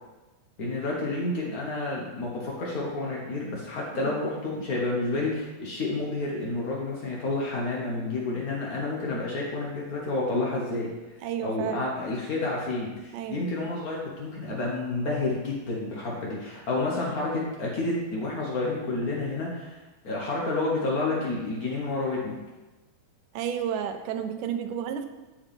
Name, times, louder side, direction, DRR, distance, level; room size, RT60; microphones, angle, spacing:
voice 1, 0.6-10.9 11.4-19.8 20.0-22.3, left 2 dB, 85° left, -4 dB, 0.8 m, -30 dB
voice 2, 11.2-11.9 13.1-13.5 23.3-25.1, right 9 dB, 85° right, 8 dB, 2.1 m, -32 dB
8.2 x 7.8 x 3.5 m, 1.1 s
omnidirectional pair, 3.7 m